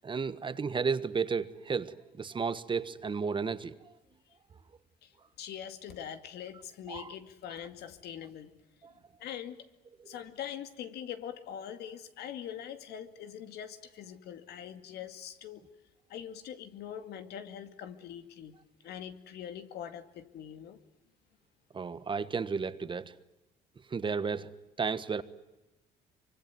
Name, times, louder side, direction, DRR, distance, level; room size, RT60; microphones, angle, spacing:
voice 1, 0.0-3.7 6.9-7.1 8.8-8.9 21.7-23.1 23.9-24.5 24.8-25.2, right 5 dB, 30° right, 1.3 m, -33 dB
voice 2, 5.0-8.5 9.2-9.7 10.1-15.7 16.1-18.6 18.8-20.8, left 9 dB, 75° left, 2.3 m, -43 dB
24.5 x 24.5 x 9.4 m
cardioid pair, 110°, 17 cm